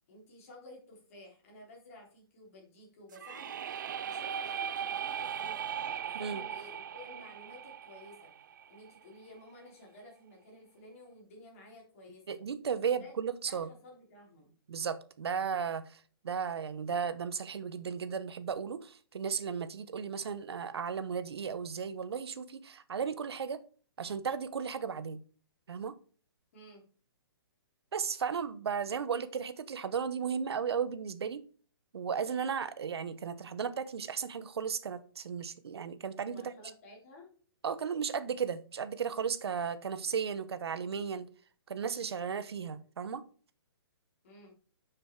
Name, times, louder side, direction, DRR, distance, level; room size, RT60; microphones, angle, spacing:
voice 1, 0.1-3.8 4.0-5.7 6.0-8.3 8.7-12.4 13.0-14.5 26.5-26.9 36.3-37.3 44.2-44.6, left 1 dB, 35° left, -1 dB, 3.3 m, -53 dB
sound 1, 3.1-9.0, right 8 dB, 50° right, 0.4 m, -38 dB
voice 2, 12.3-13.7 14.7-23.6 24.0-25.2 25.7-25.9 27.9-31.4 31.9-36.5 37.6-41.3 41.7-43.2, right 6 dB, 85° right, 13 dB, 0.9 m, -35 dB
6.9 x 6.3 x 4.5 m, 0.41 s
hypercardioid pair, 175°, 13 cm